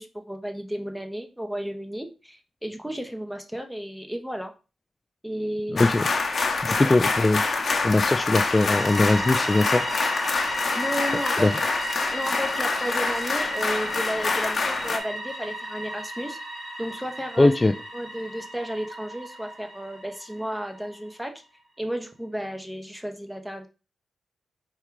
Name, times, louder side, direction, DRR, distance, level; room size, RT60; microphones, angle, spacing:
voice 1, 0.0-4.5 5.2-5.9 6.7-6.9 10.4-11.6 12.1-16.4 16.8-17.5 17.9-21.4 21.8-23.7, equal, 5° right, 5 dB, 0.8 m, -33 dB
voice 2, 5.7-6.0 6.6-7.4 7.8-9.8 11.4-11.5 17.4-17.7, left 2 dB, 25° left, 7 dB, 0.3 m, -21 dB
sound 1, 5.8-15.0, left 4 dB, 50° left, 0.8 m, -26 dB
sound 2, 8.2-20.9, equal, 30° right, 1.8 m, -34 dB
4.7 x 2.3 x 4.5 m, 0.32 s
cardioid pair, 65°, 0 cm